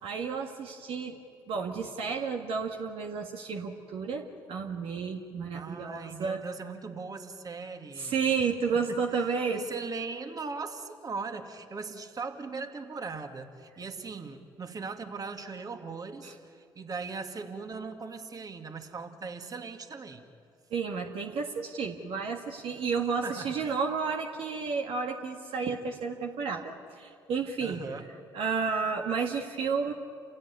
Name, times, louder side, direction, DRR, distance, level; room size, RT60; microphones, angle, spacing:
voice 1, 0.0-1.2 1.5-6.4 8.0-9.7 16.2-16.3 20.7-27.8 28.3-29.9, right 5 dB, 65° right, 2 dB, 1.8 m, -31 dB
voice 2, 5.5-8.2 8.7-20.2 23.2-23.8 27.6-28.1, right 4 dB, 40° right, 6 dB, 2.3 m, -39 dB
28.5 x 16.5 x 9.6 m, 2.4 s
hypercardioid pair, 55°, 10 cm